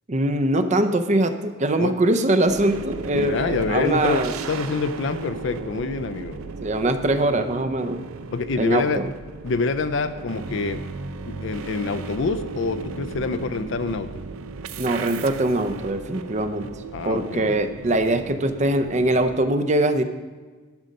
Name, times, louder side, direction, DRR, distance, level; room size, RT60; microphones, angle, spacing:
voice 1, 0.1-4.3 6.6-8.1 8.6-9.1 14.8-16.7 17.0-20.0, right 1 dB, 35° right, 9 dB, 0.6 m, -22 dB
sound 1, 2.5-19.4, right 4 dB, 90° right, 0.5 m, -36 dB
voice 2, 3.1-4.2 4.5-6.4 8.3-9.0 9.4-10.8 11.4-14.1 16.9-17.6, left 4 dB, 60° left, 9 dB, 0.4 m, -26 dB
12.0 x 6.4 x 5.2 m, 1.4 s
head